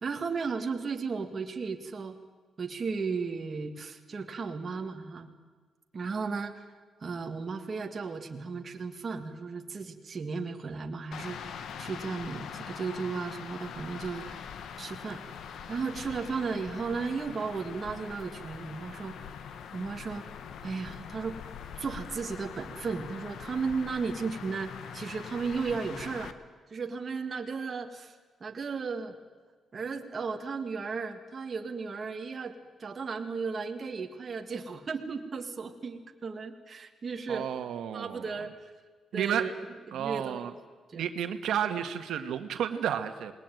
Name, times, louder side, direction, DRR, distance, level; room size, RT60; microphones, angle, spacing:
voice 1, 0.0-2.2 2.6-5.3 5.9-6.7 7.0-14.4 14.8-15.2 15.7-19.3 19.7-20.3 20.6-21.4 21.8-26.3 26.7-28.1 28.4-29.2 29.7-32.5 32.8-37.5 37.9-38.5 39.1-39.5 39.9-40.5 40.9-41.0, right 4 dB, 30° right, 4 dB, 1.9 m, -35 dB
sound 1, 11.1-26.3, left 7 dB, 65° left, 1.5 m, -43 dB
voice 2, 37.3-38.3 39.1-39.5 39.9-40.5 40.9-43.3, right 9 dB, 85° right, 8 dB, 1.7 m, -31 dB
27.5 x 20.0 x 9.3 m, 1.4 s
wide cardioid pair, 175°, 0 cm